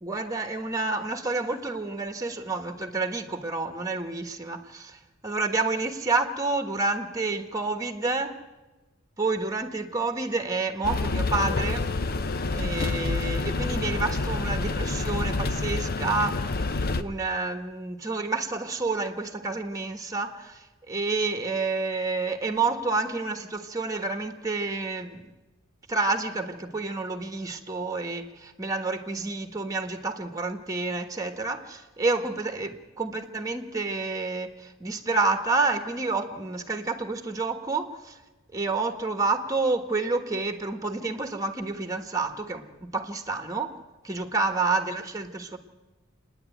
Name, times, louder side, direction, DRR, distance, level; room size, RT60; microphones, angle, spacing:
voice 1, 0.0-8.4 9.2-11.9 12.5-16.5 16.9-25.2 25.9-38.2 38.5-43.8 44.0-45.6, right 3 dB, 15° right, 1.4 m, -29 dB
sound 1, 10.8-17.0, left 3 dB, 45° left, 0.8 m, -28 dB
28.0 x 10.0 x 9.1 m
head